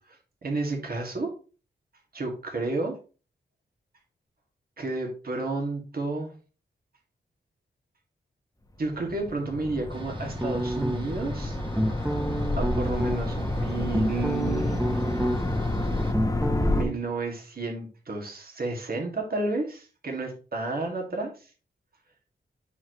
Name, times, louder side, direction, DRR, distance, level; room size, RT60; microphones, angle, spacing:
voice 1, 0.4-1.3 2.1-3.0 4.8-6.3 8.8-11.6 12.6-14.7 16.7-21.5, right 3 dB, 50° right, 1 dB, 2.2 m, -31 dB
sound 1, 8.8-16.8, left 1 dB, 20° left, 1.2 m, -29 dB
sound 2, 9.9-16.1, right 2 dB, 25° right, 1.4 m, -45 dB
sound 3, 10.4-11.3 11.7-13.2 13.7-15.6 15.9-16.9, equal, 10° right, 0.8 m, -28 dB
9.6 x 4.6 x 3.1 m, 0.35 s
cardioid pair, 70°, 19 cm